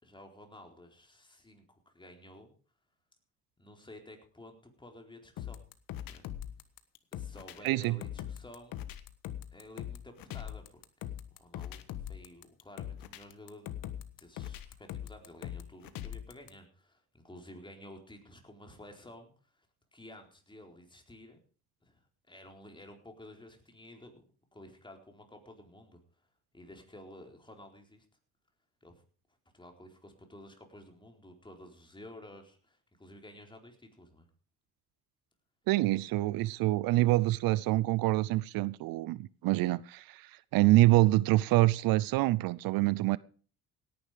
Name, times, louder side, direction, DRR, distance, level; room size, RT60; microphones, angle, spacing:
voice 1, 0.0-2.5 3.6-5.6 6.1-6.2 7.1-8.8 9.5-10.8 11.3-13.7 14.2-19.7 19.9-21.4 21.8-22.0 22.3-24.2 24.5-26.0 26.5-28.0 28.8-29.0 29.5-34.3, left 1 dB, 15° left, 4.2 m, -52 dB
sound 1, 5.4-16.5, left 11 dB, 70° left, 1.5 m, -42 dB
voice 2, 7.6-8.0 35.7-43.2, right 18 dB, 75° right, 0.6 m, -26 dB
17.5 x 10.5 x 5.1 m
supercardioid pair, 85°, 36 cm